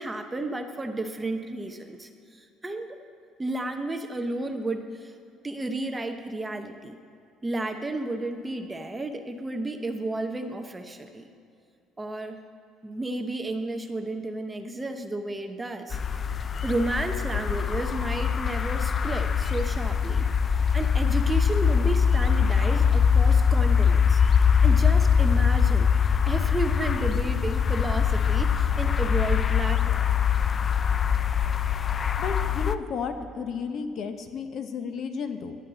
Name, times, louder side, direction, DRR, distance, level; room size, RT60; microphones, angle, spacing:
voice 1, 0.0-2.1 2.3-3.0 3.4-5.1 5.4-7.0 7.4-11.3 12.0-12.4 12.8-16.0 16.6-20.3 20.5-24.2 24.6-30.0, right 2 dB, 10° right, 5 dB, 0.8 m, -32 dB
sound 1, 15.9-32.8, left 7 dB, 30° left, 0.4 m, -23 dB
voice 2, 32.2-35.6, left 5 dB, 45° left, 8 dB, 0.9 m, -33 dB
17.5 x 11.5 x 4.0 m, 2.5 s
cardioid pair, 155°, 0 cm